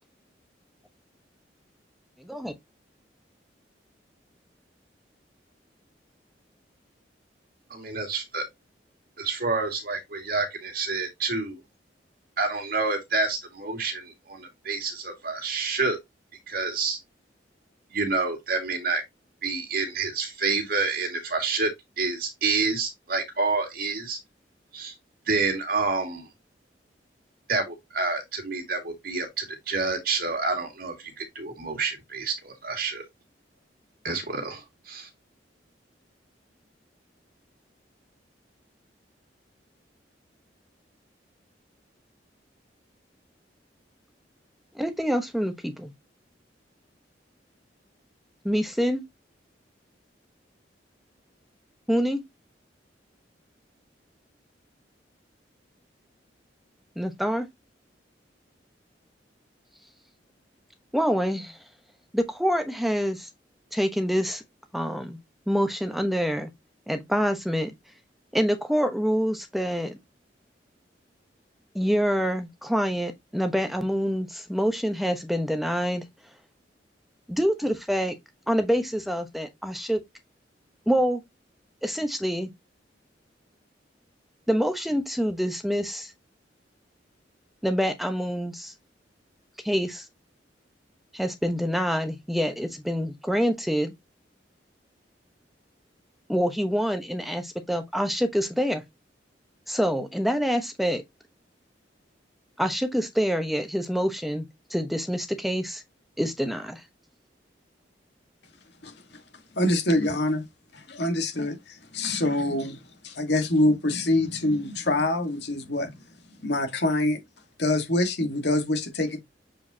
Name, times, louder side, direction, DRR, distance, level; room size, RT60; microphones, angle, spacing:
voice 1, 2.2-2.5 44.7-45.9 48.4-49.0 51.9-52.2 57.0-57.5 60.9-61.6 62.1-63.3 63.7-64.4 64.7-65.2 65.5-66.5 66.9-67.7 68.3-70.0 71.7-76.1 77.3-78.1 78.5-80.0 80.9-81.2 81.8-82.5 84.5-86.1 87.6-88.7 89.6-90.1 91.1-93.9 96.3-98.8 99.7-101.0 102.6-104.4 104.7-105.8 106.2-106.8, equal, ahead, 1.0 m, -26 dB
voice 2, 7.7-8.4 9.2-11.6 12.4-16.0 16.5-17.0 17.9-19.0 19.4-21.7 22.0-24.2 24.7-24.9 25.3-26.3 27.5-33.0 34.0-35.1, right 4 dB, 55° right, 2.2 m, -28 dB
voice 3, 109.6-110.4 110.7-112.8 113.0-115.9 116.4-117.2 117.6-119.2, left 1 dB, 65° left, 1.7 m, -25 dB
7.4 x 4.7 x 2.8 m
head